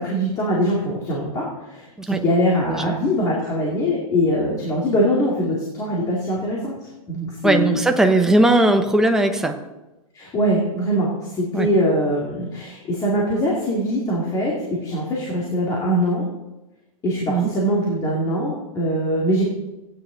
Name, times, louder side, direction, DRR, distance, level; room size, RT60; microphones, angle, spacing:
voice 1, 0.0-7.9 10.1-16.3 17.0-19.4, equal, 20° left, -4 dB, 2.3 m, -22 dB
voice 2, 7.4-9.5 11.5-11.7 17.3-17.5, right 2 dB, 5° right, 5 dB, 0.7 m, -18 dB
16.0 x 9.5 x 3.9 m, 1.0 s
hypercardioid pair, 155°, 18 cm